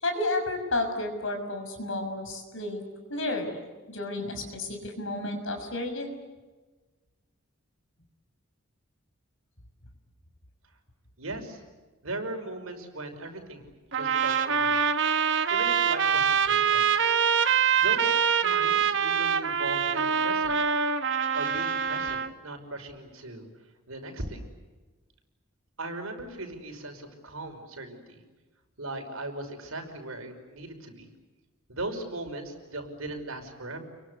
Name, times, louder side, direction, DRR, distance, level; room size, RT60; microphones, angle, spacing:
voice 1, 0.0-2.8 3.1-3.6 3.9-6.1, left 2 dB, 65° left, 5 dB, 6.4 m, -31 dB
voice 2, 11.2-11.6 12.0-14.9 15.5-16.8 17.8-20.5 21.3-23.5 23.9-24.4 25.8-28.2 28.8-31.1 31.7-33.8, right 2 dB, 80° right, 4 dB, 5.8 m, -38 dB
sound 1, 13.9-22.3, right 7 dB, 60° right, 1.2 m, -24 dB
30.0 x 23.5 x 8.3 m, 1.3 s
head